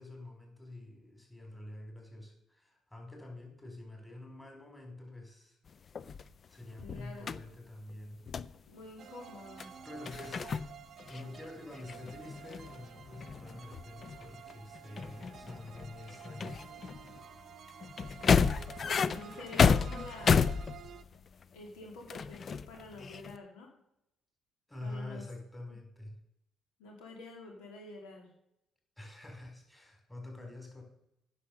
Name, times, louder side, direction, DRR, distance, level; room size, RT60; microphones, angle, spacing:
voice 1, 0.0-5.6 6.5-8.2 9.8-10.5 11.1-16.6 24.7-26.1 29.0-30.8, left 2 dB, 15° left, 2 dB, 4.5 m, -47 dB
sound 1, 5.7-7.5 8.3-8.6 9.6-9.7 10.0-10.7 11.0-21.6 22.0-23.4, left 6 dB, 50° left, 0.5 m, -32 dB
voice 2, 6.8-7.4 8.7-9.7 18.9-20.6 21.5-23.7 24.8-25.2 26.8-28.3, left 3 dB, 85° left, 1 dB, 2.5 m, -48 dB
sound 2, 9.0-21.0, right 9 dB, 60° right, 0.7 m, -51 dB
9.8 x 6.6 x 6.6 m, 0.79 s
supercardioid pair, 65°, 0 cm